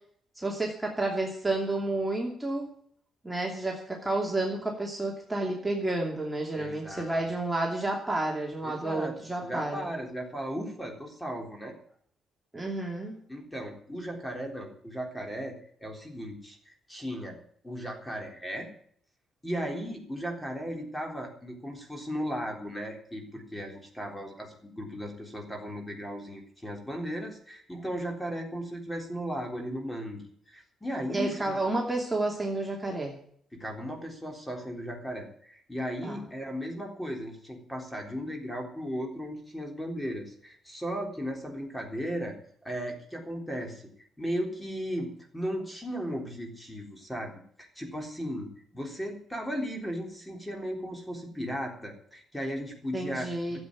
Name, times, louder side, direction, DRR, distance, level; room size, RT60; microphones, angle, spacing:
voice 1, 0.4-2.7 3.2-9.9 12.5-13.2 31.1-33.2 36.0-36.2 52.9-53.6, right 2 dB, 10° right, -1 dB, 2.8 m, -30 dB
voice 2, 6.5-7.3 8.6-9.1 9.4-11.7 13.3-17.4 17.6-18.7 19.4-31.6 33.5-42.4 42.6-43.9 44.2-47.3 47.6-53.6, equal, 10° left, 2 dB, 3.7 m, -36 dB
12.5 x 8.1 x 9.6 m, 0.62 s
cardioid pair, 90°, 0 cm